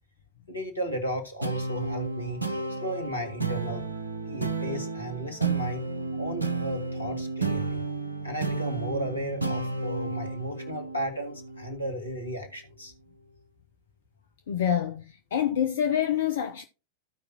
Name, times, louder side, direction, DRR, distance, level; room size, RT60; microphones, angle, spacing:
voice 1, 0.5-2.4 2.8-3.8 4.3-5.8 6.2-7.8 8.2-12.9, equal, 85° left, 1.8 m, -34 dB
sound 1, 1.4-12.2, right 3 dB, 85° right, 0.8 m, -32 dB
voice 2, 14.5-16.6, left 9 dB, 60° left, 0.7 m, -27 dB
15.0 x 5.0 x 2.9 m
figure-of-eight pair, 90°, 0 cm